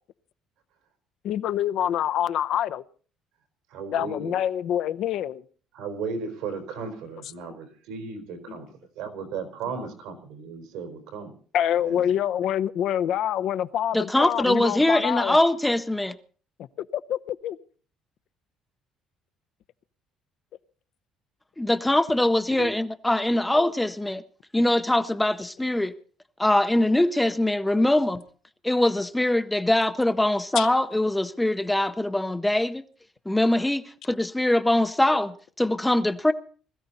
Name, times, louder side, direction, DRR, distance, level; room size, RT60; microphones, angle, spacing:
voice 1, 1.2-2.8 3.9-5.4 6.8-6.9 8.5-8.6 11.5-15.4 16.9-17.6 23.5-23.7 30.6-30.7, left 10 dB, 55° left, 0.7 m, -26 dB
voice 2, 3.7-4.3 5.7-8.7 8.9-11.3 11.8-12.1 22.6-22.7, right 5 dB, 85° right, 4.7 m, -35 dB
voice 3, 13.9-16.2 21.6-24.2 24.5-25.9 26.4-28.2 28.6-32.8 33.3-36.3, left 1 dB, 5° left, 0.7 m, -23 dB
20.5 x 14.0 x 4.2 m
cardioid pair, 165°, 0 cm